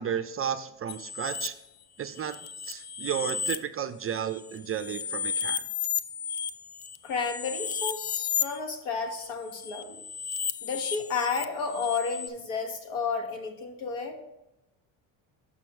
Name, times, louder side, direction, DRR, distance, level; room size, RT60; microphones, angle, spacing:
voice 1, 0.0-1.5 2.0-2.4 2.6-5.6, right 8 dB, 30° right, 9 dB, 0.4 m, -33 dB
sound 1, 0.9-1.5 2.2-3.6 4.1-8.6 9.5-12.3, left 8 dB, 55° left, 0.6 m, -33 dB
voice 2, 7.0-10.0 10.6-14.2, left 5 dB, 80° left, 3 dB, 1.4 m, -32 dB
6.0 x 5.5 x 4.6 m, 0.92 s
cardioid pair, 90°, 46 cm